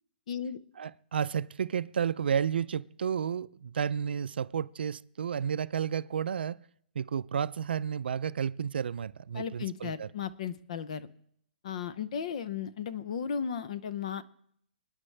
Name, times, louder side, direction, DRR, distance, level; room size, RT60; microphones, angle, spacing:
voice 1, 0.3-0.6 9.3-11.1 11.6-14.2, left 7 dB, 40° left, 0.6 m, -35 dB
voice 2, 0.8-6.6 7.0-10.1, right 8 dB, 70° right, 0.4 m, -32 dB
28.5 x 9.7 x 3.3 m
hypercardioid pair, 175°, 6 cm